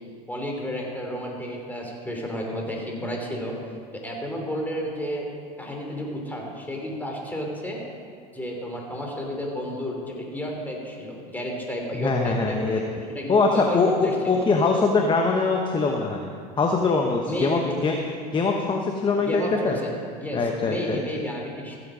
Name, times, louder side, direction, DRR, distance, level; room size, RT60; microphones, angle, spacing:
voice 1, 0.3-3.5 4.0-5.3 5.6-7.8 8.3-12.8 13.1-14.5 17.3-17.8 19.2-19.9 20.2-21.8, equal, 10° left, 0 dB, 3.1 m, -31 dB
voice 2, 11.9-12.8 13.3-16.3 16.6-18.0 18.3-19.8 20.3-21.0, left 4 dB, 25° left, 2 dB, 1.1 m, -22 dB
15.0 x 8.2 x 5.0 m, 2.1 s
hypercardioid pair, 90°, 21 cm